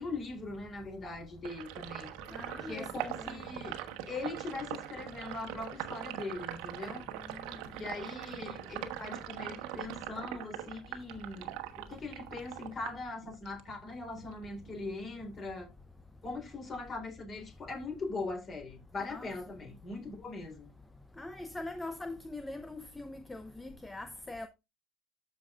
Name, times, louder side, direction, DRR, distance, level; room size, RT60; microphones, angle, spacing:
voice 1, 0.0-2.1 2.7-3.7 4.1-7.0 7.7-15.7 16.2-20.7, left 3 dB, 35° left, 4.0 m, -41 dB
Sink (filling or washing), 1.4-13.7 14.1-15.5, right 13 dB, 60° right, 1.3 m, -42 dB
voice 2, 2.3-3.4 7.3-7.8 19.1-19.3 21.2-24.5, left 2 dB, 15° left, 0.7 m, -43 dB
13.5 x 4.9 x 2.4 m
figure-of-eight pair, 65°, 0 cm